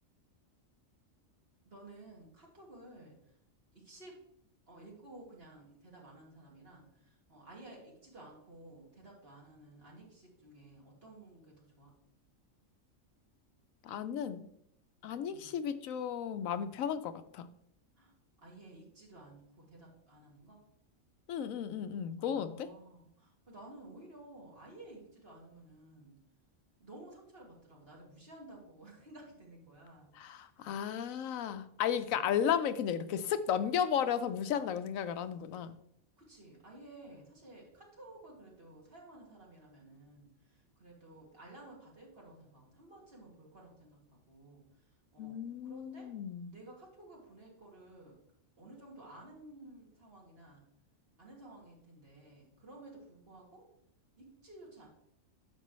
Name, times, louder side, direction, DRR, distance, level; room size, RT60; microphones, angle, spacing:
voice 1, 1.7-3.3 3.7-4.2 4.7-11.9 15.3-15.6 18.0-20.6 22.2-26.1 26.8-30.6 32.0-32.2 36.2-46.1 46.5-48.2 48.6-50.6 51.2-53.6 54.2-54.9, right 2 dB, 45° right, -3 dB, 2.5 m, -54 dB
voice 2, 13.8-14.5 15.0-17.5 21.3-22.7 30.1-35.7 45.2-46.5, left 8 dB, 85° left, 12 dB, 1.0 m, -34 dB
9.9 x 6.7 x 3.1 m, 0.75 s
omnidirectional pair, 1.4 m